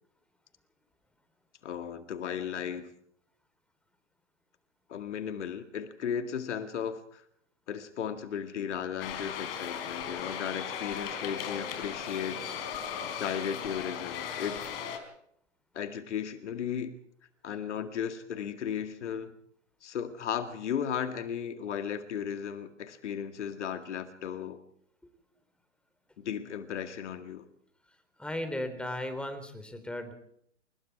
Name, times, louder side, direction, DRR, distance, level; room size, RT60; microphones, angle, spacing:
voice 1, 1.6-2.9 4.9-7.2 7.7-12.5 13.0-14.7 15.7-16.9 17.4-19.3 19.8-24.6 26.2-27.5, left 8 dB, 65° left, 8 dB, 2.2 m, -35 dB
sound 1, 9.0-15.0, left 8 dB, 50° left, 4.5 m, -37 dB
voice 2, 28.2-30.1, left 1 dB, 5° left, 8 dB, 3.4 m, -36 dB
29.0 x 19.0 x 4.7 m, 0.70 s
hypercardioid pair, 115°, 37 cm